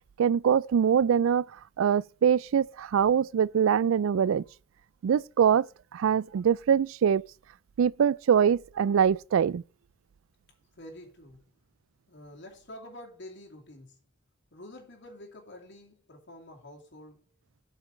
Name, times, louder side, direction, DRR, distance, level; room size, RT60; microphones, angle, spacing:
voice 1, 0.2-1.5 1.8-4.4 5.0-5.7 5.9-7.2 7.8-9.6, right 8 dB, 80° right, 0.3 m, -23 dB
voice 2, 10.8-11.4 12.1-14.0 14.5-17.2, left 1 dB, 60° left, 2.6 m, -48 dB
8.2 x 5.8 x 5.1 m
head